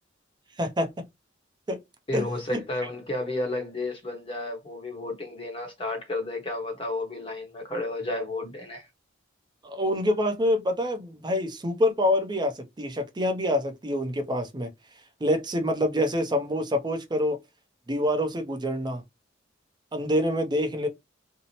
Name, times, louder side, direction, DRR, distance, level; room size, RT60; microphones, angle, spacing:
voice 1, 0.6-0.9 1.7-1.8 2.1-2.2 2.5-2.6 9.6-14.7 15.2-17.4 17.9-19.0 19.9-20.9, left 1 dB, 25° right, 0.6 m, -26 dB
voice 2, 2.1-8.9, left 2 dB, 30° left, 0.8 m, -32 dB
2.7 x 2.0 x 2.8 m
head